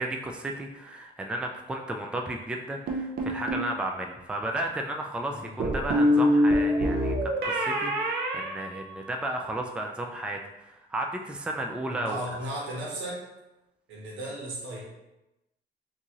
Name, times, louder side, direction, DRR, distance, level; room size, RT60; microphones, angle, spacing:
voice 1, 0.0-12.2, right 1 dB, 5° right, 2 dB, 0.3 m, -34 dB
sound 1, 2.9-3.7 5.6-9.4, equal, 55° right, 0.6 m, -25 dB
voice 2, 11.9-13.2 13.9-14.8, right 1 dB, 85° right, -4 dB, 1.2 m, -35 dB
3.6 x 2.7 x 2.9 m, 0.95 s
cardioid pair, 90°, 20 cm